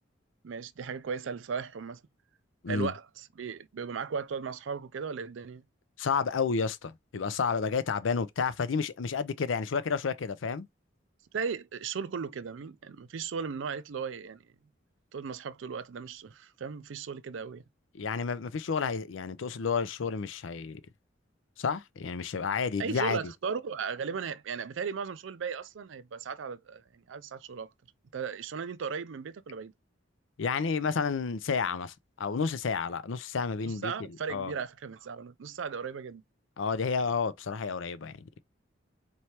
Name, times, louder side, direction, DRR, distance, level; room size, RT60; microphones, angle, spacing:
voice 1, 0.4-2.0 2.7-5.6 11.3-14.4 15.1-17.6 22.8-27.7 28.1-29.7 33.6-36.2, right 6 dB, 70° right, 0.4 m, -36 dB
voice 2, 6.0-10.7 17.9-20.8 21.6-23.2 30.4-33.9 34.3-34.5 36.6-38.2, left 5 dB, 75° left, 0.5 m, -30 dB
4.4 x 3.2 x 2.8 m
head